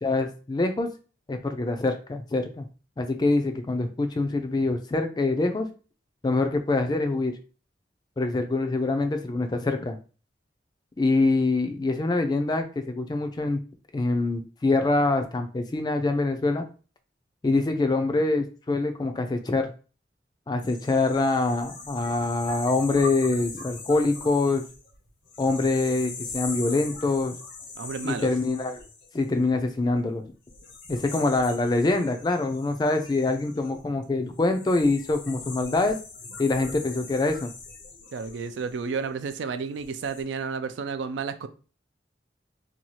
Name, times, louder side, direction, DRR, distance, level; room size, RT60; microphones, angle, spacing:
voice 1, 0.0-0.9 1.3-2.7 3.0-5.7 6.2-7.3 8.2-10.0 11.0-13.6 13.9-16.6 17.4-19.7 20.5-24.6 25.4-27.4 28.0-28.8 29.1-30.2 30.9-36.0 36.4-37.5, left 2 dB, 25° left, 6 dB, 0.3 m, -25 dB
sound 1, 20.6-29.8 30.5-39.2 39.7-40.2, left 4 dB, 85° left, 0.7 m, -41 dB
voice 2, 27.8-28.3 30.9-31.0 38.1-41.5, right 5 dB, 80° right, 10 dB, 0.3 m, -32 dB
2.7 x 2.3 x 2.9 m, 0.36 s
head